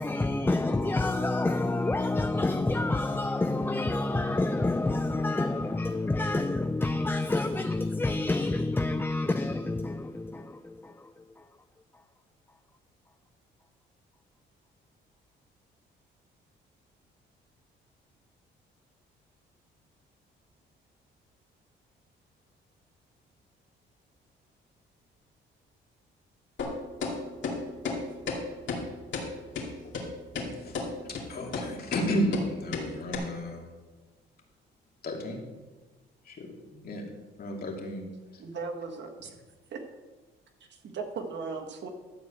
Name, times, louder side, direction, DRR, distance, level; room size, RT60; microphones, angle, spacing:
voice 1, 0.0-11.4, left 2 dB, 10° left, 0.5 m, -28 dB
sound 1, 26.6-26.7 27.0-27.1 27.4-27.6 27.9-28.0 28.3-28.4 28.7-28.8 29.1-29.3 29.6-29.7 29.9-30.0 30.4-30.5 30.7-30.9 31.2-31.3 31.5-31.7 31.9-32.1 32.3-32.5 32.7-32.9 33.1-33.2, left 5 dB, 70° left, 2.5 m, -32 dB
voice 2, 29.6-29.9 30.4-30.8 31.0-33.7 35.0-35.4 36.2-37.0 37.4-38.1 38.3-38.4, equal, 50° left, 2.5 m, -33 dB
voice 3, 38.4-39.4 39.7-39.8 40.8-41.9, right 4 dB, 65° right, 1.6 m, -37 dB
12.5 x 4.5 x 8.1 m
cardioid pair, 90°, 20 cm